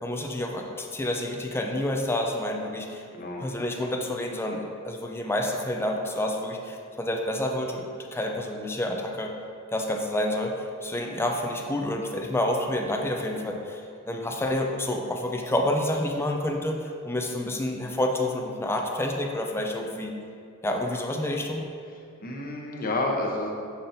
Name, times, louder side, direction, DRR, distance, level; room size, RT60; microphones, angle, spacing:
voice 1, 0.0-3.0 3.4-9.3 9.7-20.1 20.6-21.7, left 1 dB, 10° left, 2 dB, 0.4 m, -29 dB
voice 2, 3.1-3.4 22.2-23.5, left 2 dB, 45° left, -1 dB, 0.8 m, -29 dB
7.0 x 5.7 x 2.6 m, 2.4 s
head